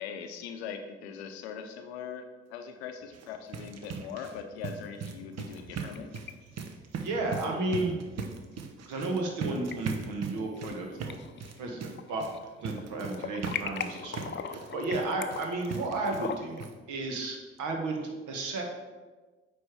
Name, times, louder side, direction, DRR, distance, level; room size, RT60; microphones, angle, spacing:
voice 1, 0.0-6.1, left 7 dB, 90° left, 7 dB, 0.6 m, -41 dB
sound 1, 3.0-16.3 16.6-16.7 17.2-17.3 17.6-17.7, right 5 dB, 55° right, 0.8 m, -40 dB
sound 2, 5.6-6.3 6.6-6.7 8.2-8.3 9.4-9.8 10.3-10.8 11.1-12.4 12.7-16.7, left 7 dB, 35° left, 0.6 m, -39 dB
voice 2, 7.0-8.0 8.9-11.2 11.6-12.2 12.6-18.6, right 2 dB, 70° right, 2 dB, 1.3 m, -33 dB
8.9 x 3.3 x 4.6 m, 1.3 s
hypercardioid pair, 50°, 31 cm